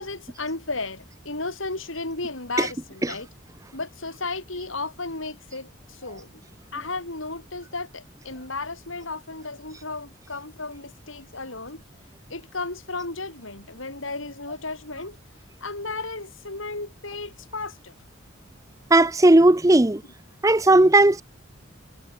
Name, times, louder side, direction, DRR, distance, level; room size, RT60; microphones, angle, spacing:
voice 1, 0.0-3.3 3.7-6.3 6.7-11.8 12.3-15.2 15.6-17.9, left 3 dB, 85° left, 6.6 m, -34 dB
voice 2, 18.9-20.0 20.4-21.2, right 2 dB, 15° right, 0.6 m, -16 dB
head